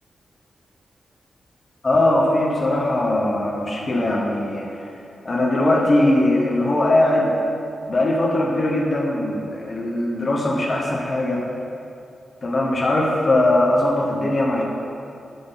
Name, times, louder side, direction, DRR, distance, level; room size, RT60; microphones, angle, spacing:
voice 1, 1.8-4.9 5.2-7.4 7.9-11.4 12.4-14.6, left 1 dB, 30° left, -2 dB, 1.0 m, -20 dB
12.0 x 6.0 x 4.0 m, 2.6 s
wide cardioid pair, 175°, 0 cm